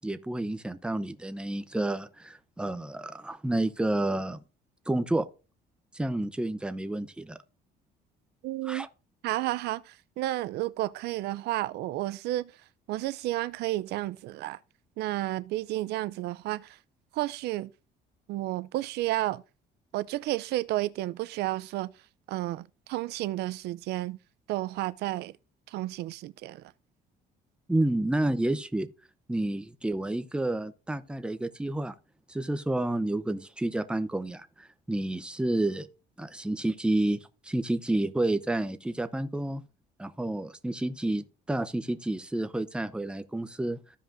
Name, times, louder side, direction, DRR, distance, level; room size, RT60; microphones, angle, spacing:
voice 1, 0.0-4.4 4.9-5.3 5.9-7.4 8.7-8.9 27.7-28.9 29.3-31.9 32.3-35.9 36.2-39.6 40.0-43.8, right 1 dB, 5° right, 0.7 m, -30 dB
voice 2, 8.4-8.9 9.2-12.5 12.9-14.6 15.0-16.8 17.1-17.7 18.3-19.4 19.9-21.9 22.3-24.2 24.5-25.3 25.7-26.7, right 16 dB, 75° right, 0.5 m, -31 dB
15.0 x 5.0 x 2.6 m
cardioid pair, 110°, 17 cm